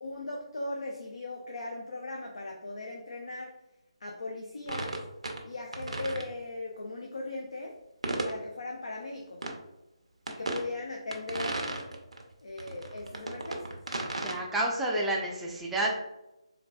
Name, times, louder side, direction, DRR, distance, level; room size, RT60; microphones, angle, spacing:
voice 1, 0.0-3.6 4.0-5.0 5.4-7.8 8.2-9.5 10.3-11.6 12.4-13.7, left 2 dB, 70° left, 0 dB, 0.5 m, -38 dB
sound 1, 4.7-5.4 5.7-6.3 8.0-8.4 9.4-9.5 10.3-10.6 11.1-12.2 12.6-14.3, right 2 dB, 80° right, 0.6 m, -34 dB
voice 2, 14.2-15.9, right 1 dB, 5° right, -4 dB, 0.4 m, -29 dB
3.9 x 2.2 x 2.2 m, 0.94 s
figure-of-eight pair, 155°, 3 cm